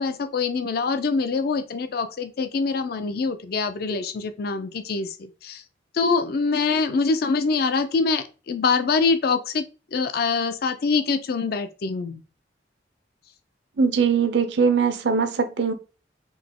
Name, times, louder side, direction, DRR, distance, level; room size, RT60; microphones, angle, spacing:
voice 1, 0.0-5.6 5.9-9.6 9.9-12.2, left 4 dB, 55° left, 10 dB, 0.4 m, -24 dB
voice 2, 13.8-15.7, right 5 dB, 70° right, 8 dB, 0.6 m, -21 dB
3.9 x 2.8 x 3.6 m, 0.33 s
head